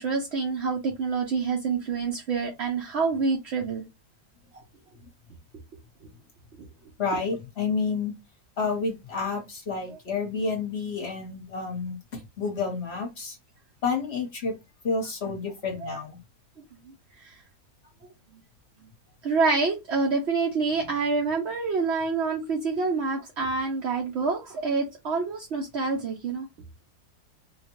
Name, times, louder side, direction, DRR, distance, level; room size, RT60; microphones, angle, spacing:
voice 1, 0.0-3.8 6.6-6.7 15.8-16.0 17.2-17.4 19.2-26.5, right 4 dB, 60° right, 0.7 m, -27 dB
voice 2, 7.0-8.1 8.6-12.0 12.4-13.4 13.8-14.6 14.8-16.2, left 4 dB, 45° left, 1.0 m, -29 dB
3.7 x 2.2 x 3.0 m
omnidirectional pair, 1.8 m